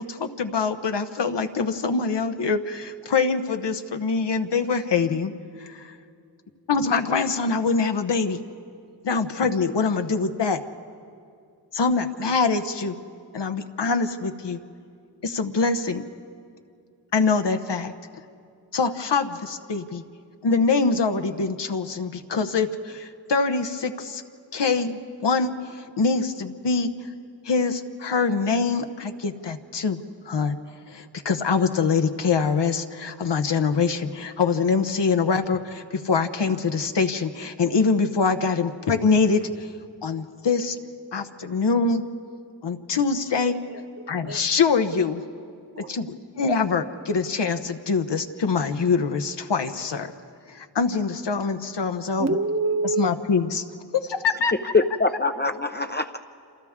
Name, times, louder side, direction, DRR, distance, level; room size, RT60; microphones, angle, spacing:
voice 1, 0.0-5.3 5.6-5.9 6.7-8.4 9.0-10.6 11.7-13.0 13.3-14.6 15.2-16.0 17.1-17.9 18.7-20.0 20.4-24.2 24.5-26.9 27.4-30.0 30.2-30.6 30.9-39.7 40.0-40.8 41.1-42.0 42.6-43.6 44.1-45.2 45.9-50.1 50.5-52.3 52.8-53.6 53.9-54.5, left 4 dB, 70° left, 7 dB, 1.1 m, -24 dB
voice 2, 43.4-44.4 45.8-45.9 52.2-53.1, right 3 dB, 35° right, 5 dB, 1.3 m, -27 dB
voice 3, 54.5-56.2, left 3 dB, 25° left, 6 dB, 0.7 m, -23 dB
28.0 x 27.5 x 3.7 m, 2.3 s
wide cardioid pair, 60°, 43 cm